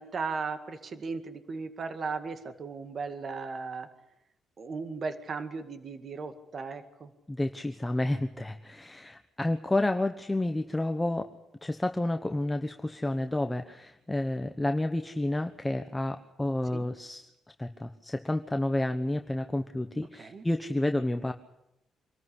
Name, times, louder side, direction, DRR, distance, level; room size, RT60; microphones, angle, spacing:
voice 1, 0.0-3.9 4.6-7.1 16.7-16.9 20.2-20.4, right 4 dB, 45° right, 9 dB, 2.1 m, -36 dB
voice 2, 7.3-11.3 11.6-17.3 17.6-21.3, left 1 dB, 10° left, 7 dB, 1.2 m, -30 dB
25.5 x 14.0 x 10.0 m, 0.86 s
cardioid pair, 90°, 0 cm